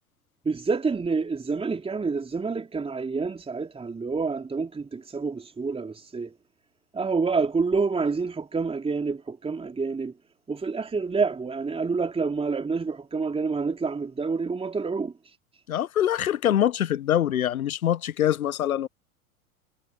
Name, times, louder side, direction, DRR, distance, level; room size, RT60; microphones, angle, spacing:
voice 1, 0.4-6.3 6.9-10.1 10.5-15.1, right 4 dB, 15° right, 3.1 m, -28 dB
voice 2, 15.7-18.9, left 11 dB, 75° left, 1.1 m, -24 dB
figure-of-eight pair, 85°, 43 cm